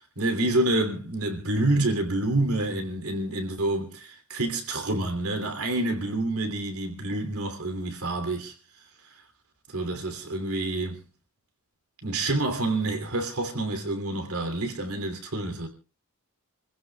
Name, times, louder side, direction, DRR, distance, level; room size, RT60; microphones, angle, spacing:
voice 1, 0.2-8.5 9.7-11.0 12.0-15.7, right 2 dB, 85° right, 3.0 m, -28 dB
29.0 x 15.5 x 2.3 m
head